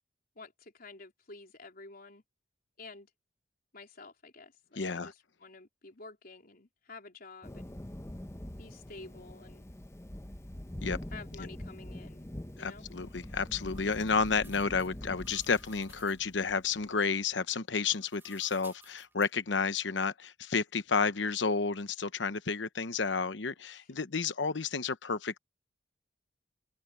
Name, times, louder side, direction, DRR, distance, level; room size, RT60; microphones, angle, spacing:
voice 1, 0.4-2.2 2.8-3.1 3.7-7.7 8.6-9.7 11.1-12.3 12.6-12.9 23.7-23.9, left 3 dB, 55° left, 3.9 m, -50 dB
voice 2, 4.8-5.1 10.8-11.0 11.4-11.5 12.6-25.4, left 5 dB, 75° left, 0.9 m, -31 dB
Thunder, 7.4-17.1, left 1 dB, 15° left, 0.9 m, -44 dB
sound 1, 12.9-16.3 17.6-19.3, right 3 dB, 15° right, 2.1 m, -59 dB
open air
head